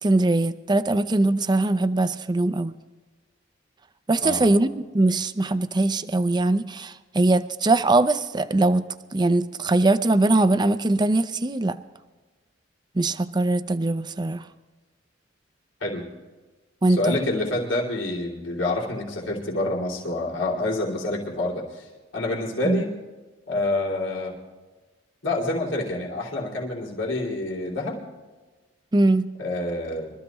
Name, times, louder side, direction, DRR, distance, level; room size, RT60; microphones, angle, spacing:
voice 1, 0.0-2.8 4.1-8.9 9.1-11.8 13.0-14.4 16.8-17.2 22.6-22.8 28.9-29.3, right 2 dB, 25° right, 11 dB, 0.5 m, -21 dB
voice 2, 16.9-22.9 23.5-24.3 25.2-28.0 29.4-30.1, left 2 dB, 85° left, -1 dB, 3.2 m, -27 dB
24.0 x 14.0 x 3.1 m, 1.2 s
head